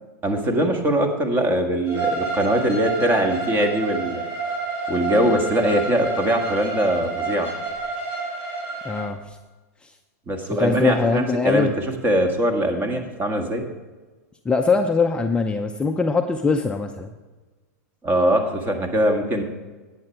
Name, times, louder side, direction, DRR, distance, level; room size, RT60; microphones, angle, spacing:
voice 1, 0.2-4.2 4.9-7.5 10.3-13.6 18.0-19.4, right 1 dB, 20° right, 5 dB, 1.7 m, -22 dB
Bowed string instrument, 1.9-9.1, right 4 dB, 45° right, 4.2 m, -28 dB
voice 2, 8.8-9.4 9.8-9.9 10.6-11.7 14.4-17.1, left 4 dB, 10° left, 4 dB, 0.6 m, -22 dB
11.0 x 9.0 x 4.6 m, 1.3 s
hypercardioid pair, 120°, 9 cm